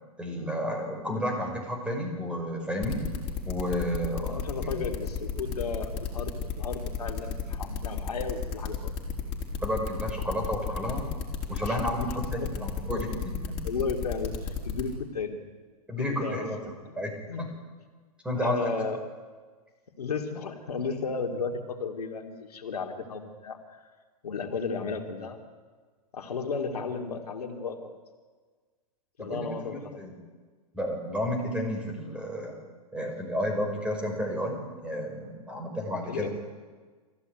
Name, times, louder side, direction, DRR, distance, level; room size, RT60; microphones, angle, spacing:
voice 1, 0.2-3.0 3.5-4.8 9.6-11.0 11.5-13.3 15.9-16.6 17.0-17.5 18.2-18.7 29.2-30.1 30.7-32.6 32.9-36.3, equal, 5° right, 2 dB, 5.7 m, -32 dB
sound 1, 2.8-14.9, left 7 dB, 30° left, 4.5 m, -32 dB
voice 2, 4.3-8.9 11.7-12.5 12.9-13.2 13.6-15.4 16.0-17.0 17.3-17.5 18.4-19.1 20.0-23.8 24.2-25.4 26.1-28.0 29.2-30.0 36.1-36.3, left 5 dB, 85° left, 3 dB, 2.8 m, -34 dB
23.5 x 15.5 x 9.3 m, 1.5 s
hypercardioid pair, 130°, 19 cm